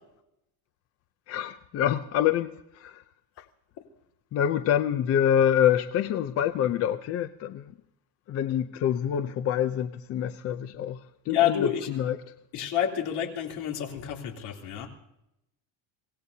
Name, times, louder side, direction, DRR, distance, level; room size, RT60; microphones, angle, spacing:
voice 1, 1.3-3.0 3.4-3.5 4.3-7.7 8.3-12.2, left 9 dB, 35° left, 0.5 m, -26 dB
voice 2, 11.3-11.9 12.5-14.9, left 10 dB, 65° left, 3.2 m, -28 dB
25.0 x 18.0 x 2.8 m
cardioid pair, 170°, 43 cm